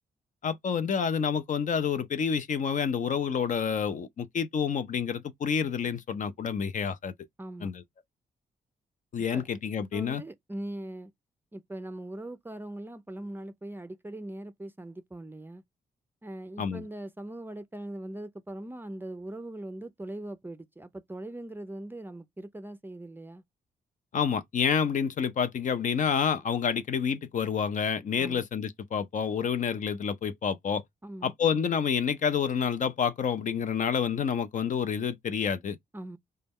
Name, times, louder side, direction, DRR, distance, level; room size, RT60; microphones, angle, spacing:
voice 1, 0.4-7.1 7.6-7.8 9.1-10.2 16.6-16.8 24.1-30.8 31.2-35.8, left 7 dB, 55° left, 0.5 m, -28 dB
voice 2, 7.4-7.7 9.3-9.4 9.9-11.1 11.5-15.6 16.2-23.4 28.2-28.5 31.0-31.3 35.9-36.2, right 1 dB, 15° right, 0.4 m, -40 dB
4.0 x 2.2 x 3.5 m
cardioid pair, 85°, 16 cm